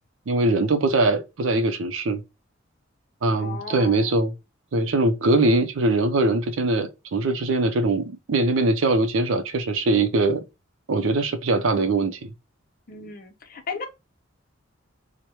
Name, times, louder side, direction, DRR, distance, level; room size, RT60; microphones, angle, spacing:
voice 1, 0.3-2.2 3.2-4.3 4.7-10.4 10.9-12.3, right 2 dB, 70° right, 0.5 m, -22 dB
voice 2, 3.3-4.1 12.9-13.9, left 5 dB, 45° left, 0.6 m, -36 dB
4.6 x 2.1 x 2.8 m
head